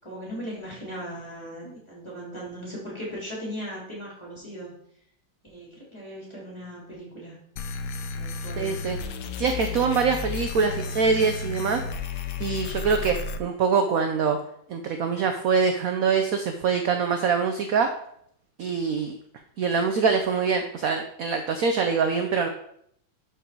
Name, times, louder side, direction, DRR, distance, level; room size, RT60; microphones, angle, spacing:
voice 1, 0.0-4.8 5.4-7.4 8.1-8.8 9.3-9.5 10.6-10.9 11.2-11.3, equal, 15° left, -4 dB, 3.6 m, -38 dB
sound 1, 7.6-13.4, left 4 dB, 70° left, 1.3 m, -33 dB
voice 2, 8.6-9.0 9.4-11.8 12.4-14.4 14.7-17.9 18.6-19.2 19.6-22.5, right 5 dB, 60° right, 6 dB, 1.0 m, -24 dB
11.5 x 4.9 x 4.6 m, 0.70 s
omnidirectional pair, 2.1 m